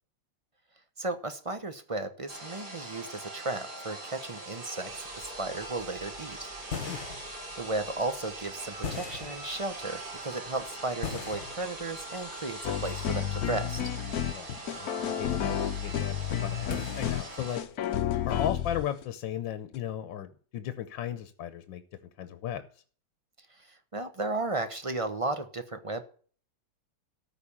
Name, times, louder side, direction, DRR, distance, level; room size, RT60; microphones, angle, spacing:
voice 1, 1.0-6.5 7.6-13.9 23.7-26.0, right 2 dB, 25° right, 9 dB, 0.7 m, -34 dB
sound 1, 2.3-17.6, right 2 dB, 60° right, 3.9 m, -42 dB
sound 2, 4.9-18.0, left 6 dB, 40° left, 1.4 m, -43 dB
sound 3, 12.6-19.0 19.7-19.8, left 10 dB, 60° left, 1.1 m, -31 dB
voice 2, 14.3-17.6 18.2-21.8 22.2-22.7, left 10 dB, 85° left, 11 dB, 1.6 m, -36 dB
13.5 x 5.2 x 8.6 m, 0.43 s
omnidirectional pair, 2.0 m